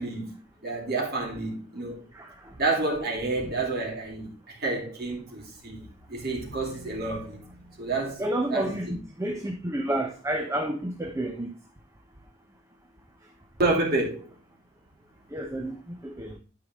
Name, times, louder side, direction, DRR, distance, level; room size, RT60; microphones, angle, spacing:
voice 1, 0.0-2.0 2.6-8.2 8.5-9.0 13.6-14.3, right 2 dB, 50° right, 3.0 m, -29 dB
voice 2, 2.1-2.5 8.2-11.5 15.3-16.4, right 1 dB, 15° right, 0.8 m, -30 dB
12.5 x 4.8 x 3.7 m
head